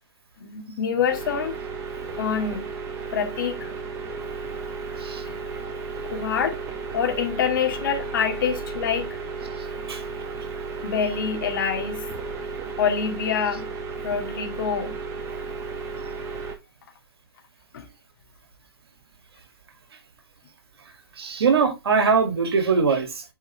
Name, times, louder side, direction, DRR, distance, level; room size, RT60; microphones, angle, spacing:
voice 1, 0.4-1.6 2.2-2.7 3.1-3.7 6.1-6.6 6.9-9.2 10.8-12.1 12.8-13.7 14.0-15.0 17.7-17.9, left 7 dB, 55° left, 2.1 m, -26 dB
sound 1, 1.1-16.5, right 4 dB, 20° right, 1.8 m, -34 dB
voice 2, 21.2-23.2, right 5 dB, 70° right, 2.5 m, -21 dB
8.5 x 5.3 x 3.3 m
hypercardioid pair, 135°, 13 cm